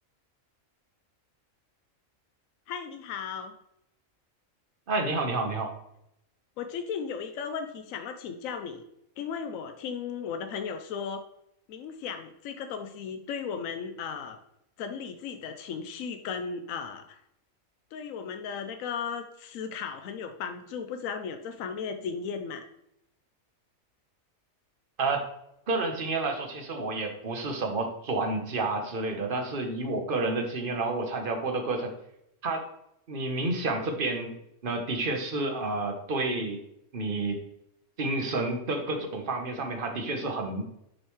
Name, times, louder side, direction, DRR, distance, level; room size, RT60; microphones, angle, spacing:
voice 1, 2.7-3.5 6.6-8.8 9.2-11.2 11.7-14.4 14.8-17.2 17.9-22.7, left 6 dB, 85° left, 7 dB, 1.0 m, -36 dB
voice 2, 4.9-5.7 25.0-25.3 25.7-31.9 32.4-32.6 33.1-34.3 34.6-36.6 36.9-37.4 38.0-40.6, right 2 dB, 45° right, 4 dB, 1.1 m, -30 dB
6.7 x 5.4 x 3.1 m, 0.78 s
omnidirectional pair, 1.4 m